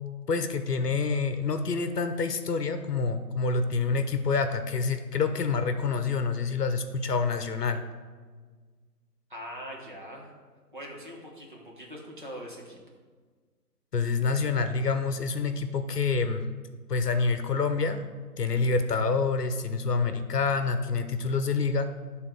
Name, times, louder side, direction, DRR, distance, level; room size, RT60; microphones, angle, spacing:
voice 1, 0.3-7.8 13.9-16.5 16.9-18.1 18.4-21.9, left 4 dB, 70° left, 8 dB, 0.8 m, -27 dB
voice 2, 9.3-10.3 10.7-12.8, equal, 30° right, -2 dB, 1.0 m, -42 dB
10.0 x 3.7 x 4.4 m, 1.5 s
figure-of-eight pair, 170°, 49 cm